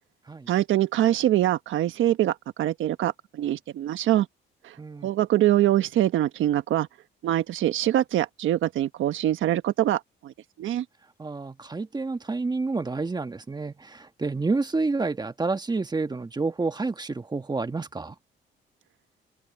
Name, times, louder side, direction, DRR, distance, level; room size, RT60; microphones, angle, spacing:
voice 1, 0.5-4.3 4.6-4.7 5.0-6.9 7.2-10.3 10.6-10.8, right 13 dB, 80° right, 1.4 m, -24 dB
voice 2, 4.8-5.1 11.2-18.1, right 3 dB, 20° right, 1.4 m, -29 dB
cardioid pair, 90°, 20 cm